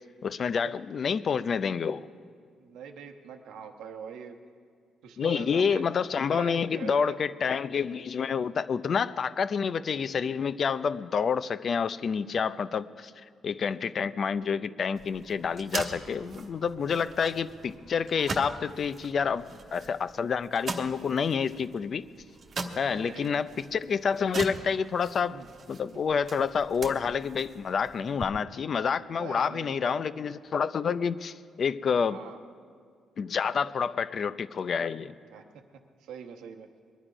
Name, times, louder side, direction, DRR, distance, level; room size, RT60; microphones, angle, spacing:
voice 1, 0.2-2.1 5.2-13.1 13.4-22.0 22.8-25.4 25.7-32.2 33.2-35.1, left 6 dB, 50° left, 15 dB, 0.5 m, -28 dB
voice 2, 2.6-4.4 5.0-5.8 6.3-7.2 22.9-23.4 25.2-25.5 29.0-30.0 32.1-32.4 35.3-35.5 36.0-36.7, right 7 dB, 90° right, 5 dB, 1.1 m, -43 dB
sound 1, 15.0-28.2, right 3 dB, 45° right, 1.2 m, -41 dB
21.0 x 11.0 x 5.0 m, 2.1 s
cardioid pair, 90°, 0 cm